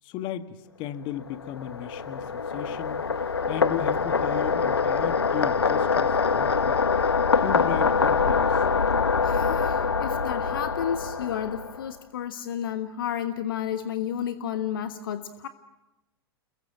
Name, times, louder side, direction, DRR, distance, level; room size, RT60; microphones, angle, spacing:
voice 1, 0.0-3.0 3.5-6.8 7.4-8.6, left 11 dB, 40° left, 10 dB, 1.8 m, -35 dB
sound 1, 1.2-11.9, left 5 dB, 80° left, 0.9 m, -24 dB
voice 2, 9.2-15.5, left 9 dB, 60° left, 10 dB, 1.4 m, -32 dB
29.0 x 22.0 x 7.6 m, 0.96 s
figure-of-eight pair, 95°, 13 cm